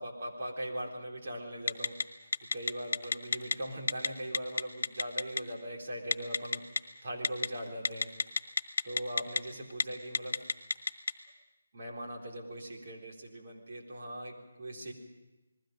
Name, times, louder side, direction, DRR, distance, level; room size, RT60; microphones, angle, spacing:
voice 1, 0.0-1.9 2.5-6.6 7.0-8.1 8.8-10.4 11.7-14.9, right 1 dB, 45° right, -1 dB, 4.1 m, -40 dB
Telephone, 1.7-2.0 2.3-3.5 3.9-4.1 4.3-5.4 6.1-6.8 7.2-7.5 7.8-9.4 9.7-9.8 10.1-11.1, left 4 dB, 65° left, 1.5 m, -28 dB
29.0 x 20.5 x 5.2 m, 1.1 s
hypercardioid pair, 170°, 0 cm